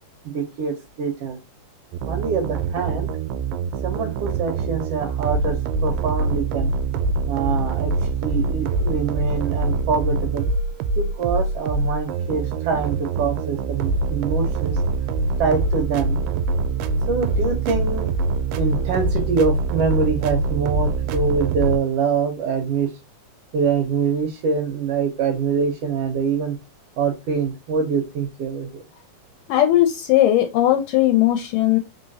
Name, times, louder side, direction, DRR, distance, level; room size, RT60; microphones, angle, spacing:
voice 1, 0.2-1.4 2.1-3.1 3.8-6.7 7.3-7.9 8.2-10.5 10.9-14.8 15.4-16.2 17.1-18.1 18.5-22.9 23.5-26.6 27.0-28.8, right 5 dB, 70° right, 4 dB, 1.5 m, -24 dB
sound 1, 1.9-21.8, right 3 dB, 85° right, 2.2 m, -24 dB
voice 2, 29.5-31.8, left 13 dB, 80° left, 6 dB, 2.1 m, -18 dB
4.4 x 3.8 x 2.7 m, 0.24 s
omnidirectional pair, 3.9 m